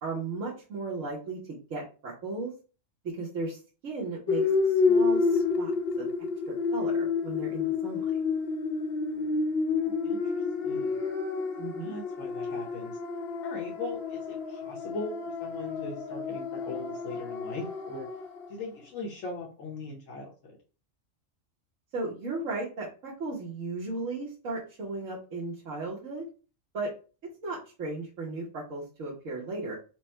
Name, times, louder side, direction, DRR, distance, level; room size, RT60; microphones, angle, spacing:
voice 1, 0.0-2.5 3.0-5.7 6.0-6.1 6.5-8.0 11.6-11.9 21.9-26.3 26.7-26.9 27.4-29.8, right 3 dB, 80° right, -5 dB, 1.4 m, -36 dB
sound 1, 4.3-18.5, left 4 dB, 55° left, 0.9 m, -29 dB
voice 2, 9.8-11.1 11.8-13.0 13.4-18.1 18.5-20.6, left 3 dB, 75° left, -1 dB, 1.3 m, -40 dB
5.0 x 2.1 x 4.4 m, 0.35 s
omnidirectional pair, 1.3 m